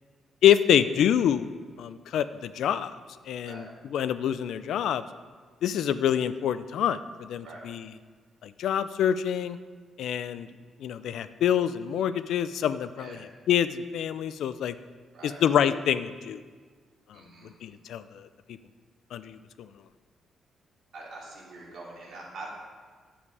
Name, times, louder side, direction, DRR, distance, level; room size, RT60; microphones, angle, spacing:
voice 1, 0.4-1.5 1.8-2.9 3.3-3.6 3.9-5.0 5.6-7.8 8.4-9.6 10.0-10.5 10.8-13.2 13.5-14.8 15.2-16.4 17.1-18.3 19.1-19.7, left 9 dB, 75° left, 13 dB, 0.4 m, -26 dB
voice 2, 17.1-17.5 20.9-22.5, right 2 dB, 55° right, -4 dB, 2.7 m, -44 dB
10.0 x 7.3 x 4.8 m, 1.5 s
wide cardioid pair, 180°, 0 cm